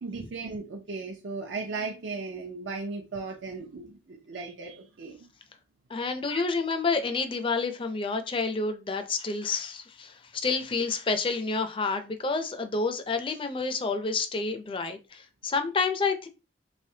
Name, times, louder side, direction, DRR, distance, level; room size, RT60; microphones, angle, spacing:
voice 1, 0.0-5.2 6.3-6.4, right 4 dB, 85° right, 0.6 m, -36 dB
voice 2, 5.9-16.3, left 4 dB, 30° left, 0.4 m, -29 dB
3.3 x 3.3 x 2.7 m
head